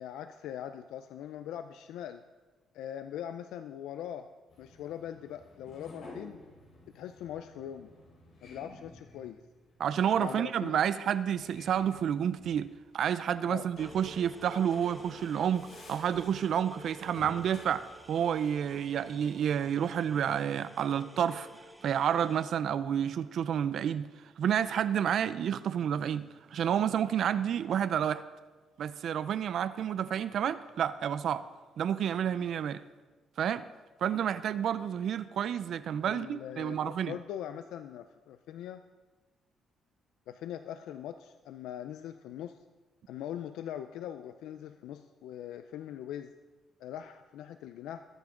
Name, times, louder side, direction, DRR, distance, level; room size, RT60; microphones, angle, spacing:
voice 1, 0.0-2.2 2.7-4.3 4.6-6.4 6.9-7.9 8.4-9.4 10.2-10.8 13.5-13.7 36.0-38.8 40.3-42.6 43.1-46.3 46.8-48.1, left 10 dB, 90° left, 9 dB, 0.5 m, -41 dB
sound 1, 4.5-19.7, left 2 dB, 70° left, 5.2 m, -53 dB
voice 2, 9.8-12.7 12.9-21.5 21.8-24.1 24.4-28.2 28.8-31.4 31.8-32.8 33.4-33.6 34.0-37.1, right 9 dB, 65° right, 14 dB, 0.6 m, -30 dB
sound 2, 13.8-22.4, right 1 dB, 5° right, 1.9 m, -52 dB
22.5 x 9.1 x 3.9 m, 1.2 s
cardioid pair, 90°, 0 cm